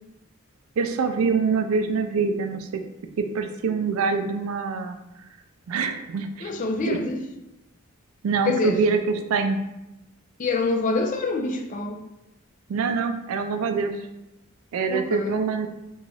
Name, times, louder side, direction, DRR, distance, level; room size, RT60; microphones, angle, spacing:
voice 1, 0.8-2.8 3.2-5.0 5.7-6.5 6.9-7.0 8.2-9.6 12.7-13.9 14.7-15.7, right 5 dB, 75° right, 7 dB, 0.3 m, -25 dB
voice 2, 6.4-7.2 8.5-8.8 10.4-12.0 14.9-15.4, left 3 dB, 35° left, 4 dB, 0.3 m, -26 dB
2.9 x 2.3 x 4.0 m, 0.93 s
head